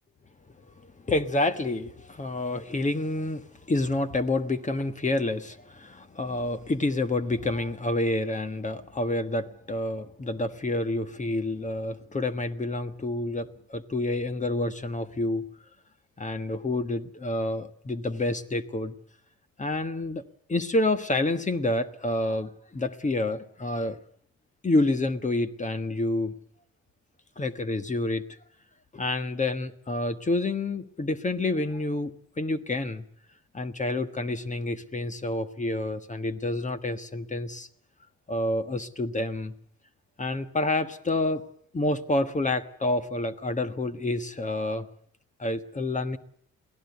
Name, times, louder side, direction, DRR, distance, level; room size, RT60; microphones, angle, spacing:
voice 1, 0.8-15.4 16.2-18.9 19.6-20.2 20.5-24.0 24.6-26.3 27.4-28.4 28.9-33.0 33.5-37.7 38.3-39.5 40.2-41.4 41.7-44.9 45.4-46.2, left 2 dB, 25° left, 10 dB, 1.4 m, -28 dB
23.0 x 16.5 x 8.2 m, 0.65 s
cardioid pair, 90°, 30 cm